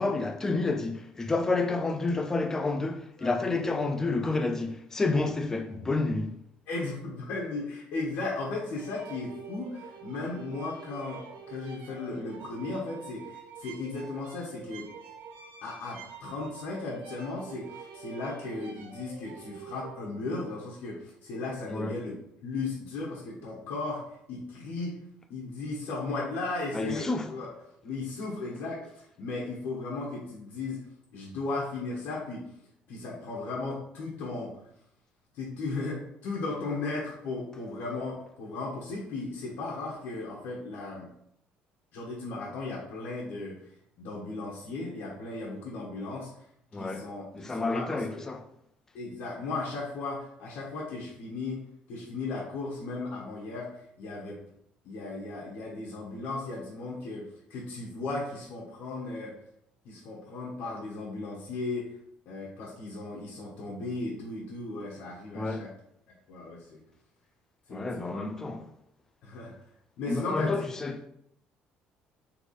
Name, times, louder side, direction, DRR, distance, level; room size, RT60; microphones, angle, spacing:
voice 1, 0.0-6.3 21.7-21.9 26.7-27.3 46.7-47.1 47.3-48.5 65.3-65.7 67.7-68.7 70.1-71.0, left 3 dB, 15° left, 0.4 m, -29 dB
voice 2, 6.7-14.9 15.6-24.0 24.3-25.0 25.3-27.5 27.8-30.8 31.1-32.4 32.9-34.5 35.3-41.1 41.9-43.6 44.0-46.3 46.8-48.2 48.9-51.6 51.9-54.4 54.8-57.2 57.5-59.3 59.8-61.9 62.2-65.7 66.3-66.8 67.7-67.9 68.1-68.3 69.2-69.5 70.0-70.5, left 3 dB, 70° left, 1.1 m, -36 dB
sound 1, 8.8-20.0, right 6 dB, 70° right, 0.7 m, -46 dB
4.1 x 3.2 x 3.2 m
cardioid pair, 150°, 3 cm